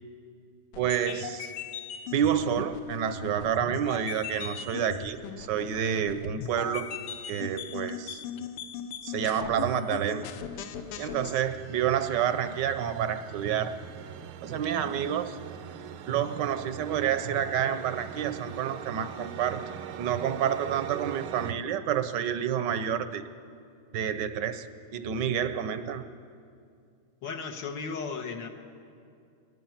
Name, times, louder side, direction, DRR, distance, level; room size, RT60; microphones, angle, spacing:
sound 1, 0.7-11.4, left 8 dB, 85° left, 1.7 m, -39 dB
voice 1, 0.8-1.5 2.1-6.9 7.3-8.2 9.0-10.3 11.0-13.8 14.4-15.4 16.1-19.6 20.0-23.2 23.9-24.7 24.9-26.0, right 9 dB, 65° right, 11 dB, 1.2 m, -29 dB
sound 2, 10.0-21.5, right 10 dB, 80° right, 1.6 m, -42 dB
voice 2, 27.2-28.5, left 5 dB, 60° left, 4 dB, 1.7 m, -35 dB
23.0 x 19.5 x 5.8 m, 2.4 s
omnidirectional pair, 2.4 m